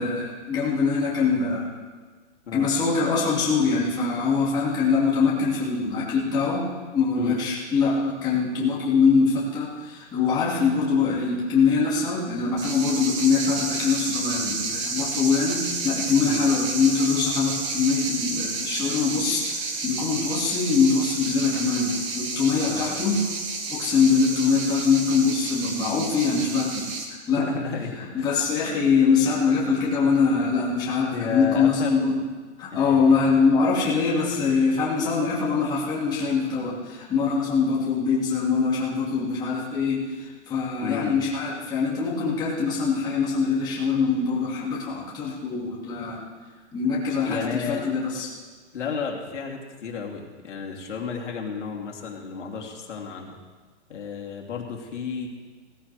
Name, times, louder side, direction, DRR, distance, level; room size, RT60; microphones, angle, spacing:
voice 1, 0.0-1.7 2.5-6.7 6.9-23.3 23.7-26.9 27.3-27.5 28.1-32.2 32.6-46.2 46.7-48.3, left 5 dB, 10° left, -7 dB, 2.0 m, -23 dB
sound 1, 12.6-27.0, right 3 dB, 25° right, 1.3 m, -31 dB
voice 2, 22.6-23.0 27.3-28.4 31.1-32.0 32.7-33.1 40.8-41.2 47.2-48.0 48.7-53.4 53.9-55.3, left 5 dB, 80° left, -1 dB, 3.0 m, -32 dB
18.0 x 13.5 x 3.3 m, 1.4 s
hypercardioid pair, 170°, 35 cm